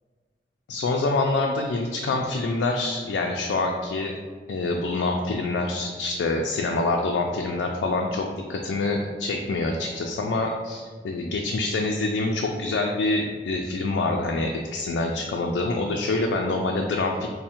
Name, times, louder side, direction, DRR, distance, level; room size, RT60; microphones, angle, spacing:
voice 1, 0.7-4.1 4.5-17.3, left 2 dB, 80° left, 1 dB, 0.3 m, -26 dB
3.4 x 2.1 x 4.2 m, 1.5 s
head